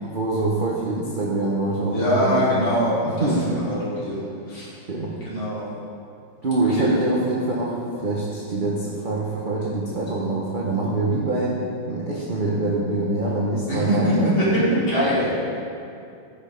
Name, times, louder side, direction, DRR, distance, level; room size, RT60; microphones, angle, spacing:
voice 1, 0.0-2.6 3.0-3.4 4.9-5.1 6.4-11.6 11.8-14.3 14.7-14.9, right 2 dB, 30° right, -5 dB, 1.0 m, -24 dB
voice 2, 1.9-3.3 3.7-4.7 5.2-5.7 6.8-6.9 13.7-14.5 14.9-15.3, left 1 dB, 80° left, -10 dB, 4.0 m, -23 dB
13.5 x 6.2 x 5.1 m, 2.5 s
omnidirectional pair, 2.2 m